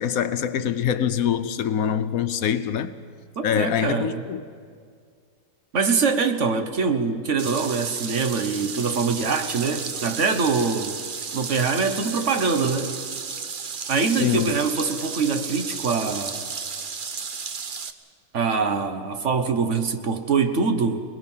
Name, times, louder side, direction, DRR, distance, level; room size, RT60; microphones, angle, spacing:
voice 1, 0.0-2.9 3.4-4.4 14.1-14.5, left 8 dB, 80° left, 1.2 m, -24 dB
voice 2, 3.4-4.2 5.7-11.0 11.3-12.9 13.9-16.4 18.3-21.0, right 5 dB, 60° right, 1.5 m, -24 dB
sound 1, 7.4-17.9, right 5 dB, 40° right, 0.9 m, -33 dB
27.5 x 20.5 x 5.6 m
omnidirectional pair, 1.5 m